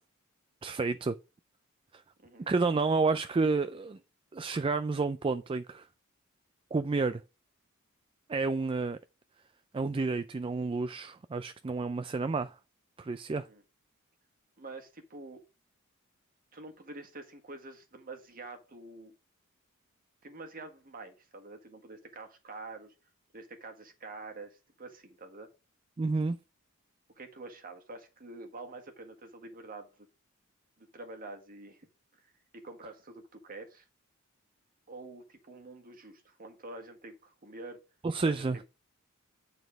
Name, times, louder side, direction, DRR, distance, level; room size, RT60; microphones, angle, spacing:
voice 1, 0.6-1.1 2.5-4.0 4.3-5.9 6.7-7.2 8.3-9.0 9.7-12.5 13.0-13.5 26.0-26.4 38.0-38.6, right 3 dB, 25° right, 0.4 m, -30 dB
voice 2, 13.3-13.6 14.6-15.4 16.5-19.1 20.2-22.9 23.3-25.5 27.2-30.1 30.8-31.9 32.1-33.8 34.9-37.8 38.2-38.5, right 2 dB, 45° right, 1.6 m, -47 dB
9.1 x 4.1 x 5.0 m
head